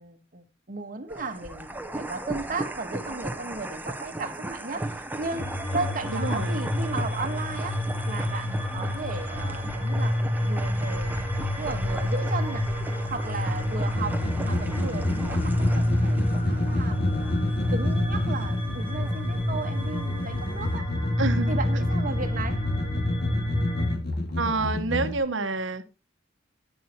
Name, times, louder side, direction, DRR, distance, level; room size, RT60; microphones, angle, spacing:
voice 1, 0.0-11.3 11.6-12.7 13.1-17.2 17.7-20.9 21.5-22.7, right 3 dB, 45° right, 1.3 m, -35 dB
sound 1, 1.1-20.8, right 1 dB, 10° right, 0.9 m, -38 dB
sound 2, 5.2-23.9, left 1 dB, 35° left, 3.0 m, -28 dB
voice 2, 6.2-6.5 21.2-21.6 24.4-25.8, right 3 dB, 75° right, 1.2 m, -28 dB
sound 3, 13.9-25.2, left 1 dB, 55° left, 2.0 m, -30 dB
10.5 x 9.1 x 2.9 m
head